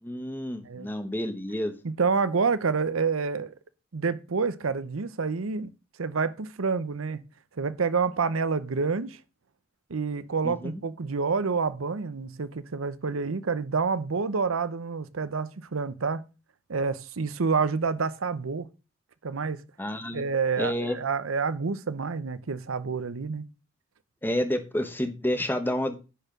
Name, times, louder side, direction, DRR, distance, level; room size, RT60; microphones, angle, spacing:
voice 1, 0.0-1.7 10.4-10.7 19.8-20.2 20.6-21.0 24.2-26.0, left 1 dB, 10° left, 1.2 m, -29 dB
voice 2, 1.8-3.6 3.9-5.7 6.0-7.2 7.6-9.2 9.9-16.2 16.7-18.7 19.2-19.6 20.1-23.5, right 5 dB, 90° right, 0.7 m, -28 dB
10.0 x 4.5 x 6.0 m
head